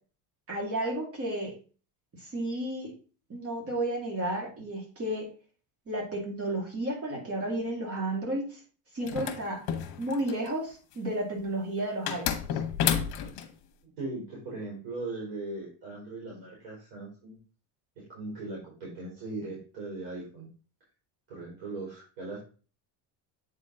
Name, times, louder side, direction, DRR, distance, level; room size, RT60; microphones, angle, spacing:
voice 1, 0.5-1.5 2.2-2.9 3.3-5.3 5.9-8.6 8.9-9.6 10.0-12.6, right 1 dB, 30° right, 0 dB, 2.3 m, -32 dB
sound 1, 9.1-10.5 12.1-13.5, left 9 dB, 55° left, 1.3 m, -30 dB
voice 2, 13.8-17.4 18.1-20.5 21.3-22.4, right 2 dB, 70° right, -4 dB, 3.8 m, -39 dB
8.1 x 4.2 x 3.8 m, 0.37 s
cardioid pair, 150°, 44 cm